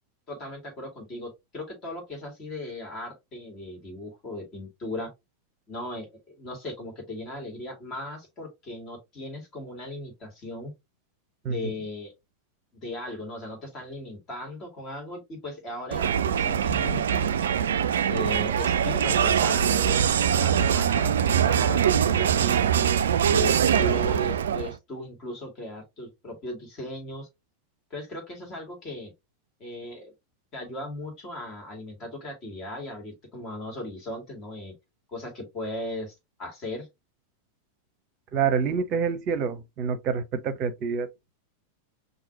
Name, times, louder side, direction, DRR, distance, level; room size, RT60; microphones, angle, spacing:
voice 1, 0.3-5.1 5.7-10.7 11.4-12.1 12.7-17.3 18.0-20.0 20.3-23.0 23.3-27.3 27.9-29.1 29.6-30.1 30.5-34.7 35.1-36.9, left 1 dB, 30° left, 2.5 m, -37 dB
Crowd, 15.9-24.8, right 8 dB, 65° right, 0.3 m, -23 dB
voice 2, 38.3-41.1, right 6 dB, 40° right, 0.7 m, -27 dB
5.6 x 2.7 x 2.8 m
figure-of-eight pair, 90°, 0 cm